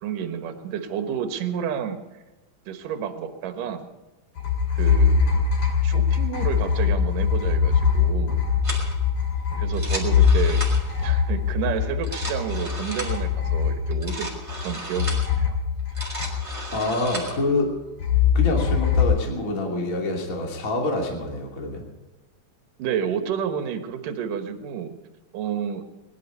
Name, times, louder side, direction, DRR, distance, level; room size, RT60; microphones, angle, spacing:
voice 1, 0.0-2.0 2.7-3.9 4.7-5.4 5.8-8.5 9.6-10.7 11.0-15.6 22.8-25.0 25.3-25.8, right 8 dB, 70° right, 7 dB, 2.8 m, -30 dB
sound 1, 4.4-14.6 15.0-16.8 18.0-19.0, left 7 dB, 45° left, 3.6 m, -22 dB
sound 2, 8.6-8.9 9.7-11.0 11.9-13.2 13.9-15.3 15.8-17.4, right 1 dB, 10° right, 3.6 m, -34 dB
voice 2, 16.7-17.7 18.3-21.8, left 2 dB, 25° left, 0 dB, 2.6 m, -26 dB
21.5 x 11.5 x 5.5 m, 1.1 s
omnidirectional pair, 4.2 m